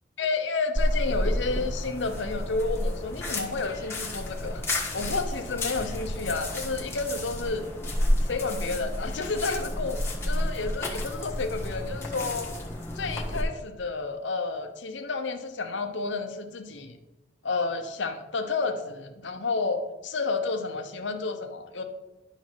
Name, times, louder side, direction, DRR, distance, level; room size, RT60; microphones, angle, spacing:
voice 1, 0.2-4.6 4.9-7.7 8.2-10.0 10.3-12.5 12.9-16.9 17.4-21.8, left 3 dB, 85° left, 6 dB, 0.9 m, -31 dB
sound 1, 0.8-13.4, left 1 dB, 15° left, 1.4 m, -31 dB
11.0 x 4.1 x 6.2 m, 1.1 s
head